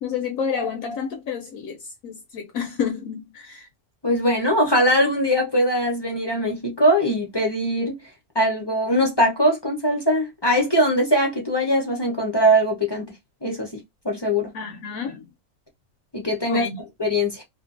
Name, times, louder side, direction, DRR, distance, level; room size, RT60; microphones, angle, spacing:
voice 1, 0.0-1.8 2.0-3.7 14.5-15.3 16.5-16.8, left 6 dB, 70° left, 0.9 m, -29 dB
voice 2, 4.0-8.0 8.3-13.0 13.4-13.7 14.0-14.5 16.1-16.6 17.0-17.4, equal, 25° left, 0.5 m, -21 dB
2.6 x 2.5 x 2.4 m
omnidirectional pair, 1.6 m